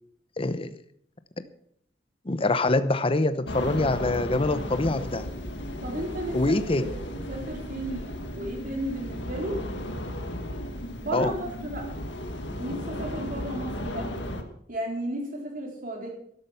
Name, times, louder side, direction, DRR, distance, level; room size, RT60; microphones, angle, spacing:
voice 1, 0.4-0.8 2.2-5.3 6.3-6.9 11.1-11.3, left 2 dB, 30° left, 12 dB, 0.9 m, -25 dB
sound 1, 3.4-14.4, left 1 dB, 80° left, 1.8 m, -35 dB
voice 2, 5.8-9.6 11.0-11.9 12.6-14.1 14.7-16.1, right 1 dB, 50° right, 0 dB, 4.0 m, -34 dB
12.5 x 12.0 x 5.9 m, 0.66 s
head